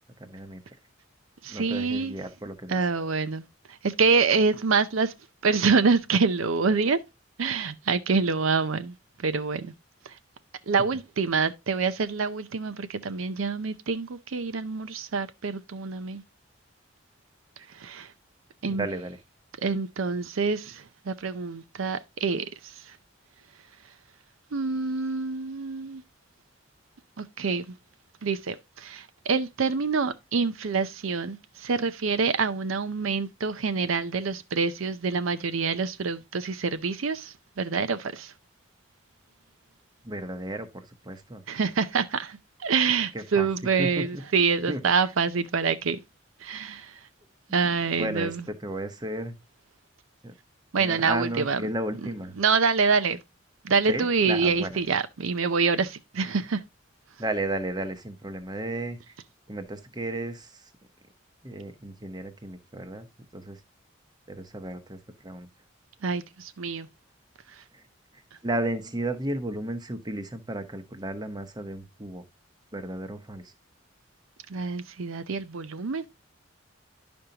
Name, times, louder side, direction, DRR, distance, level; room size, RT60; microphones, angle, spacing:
voice 1, 0.2-0.6 1.5-2.9 18.6-19.2 40.0-40.7 41.0-41.4 43.1-43.5 43.8-44.2 44.7-45.1 47.6-49.4 50.2-50.3 50.7-52.3 53.9-54.8 57.2-59.1 59.5-60.7 61.4-63.1 63.3-63.6 64.3-65.5 67.7-67.8 68.4-72.2 72.7-73.5, right 1 dB, 20° right, 0.9 m, -33 dB
voice 2, 1.4-2.1 2.7-3.4 3.8-5.1 5.4-7.0 7.4-9.0 9.2-9.7 10.1-10.2 10.7-16.2 17.7-18.1 18.6-18.9 19.6-22.5 24.5-26.0 27.2-27.7 28.2-38.3 41.5-46.0 46.4-46.9 47.5-48.4 50.7-51.6 52.4-53.2 53.6-56.6 66.0-66.9 74.5-76.0, right 5 dB, 75° right, 0.6 m, -26 dB
11.0 x 5.2 x 2.8 m
head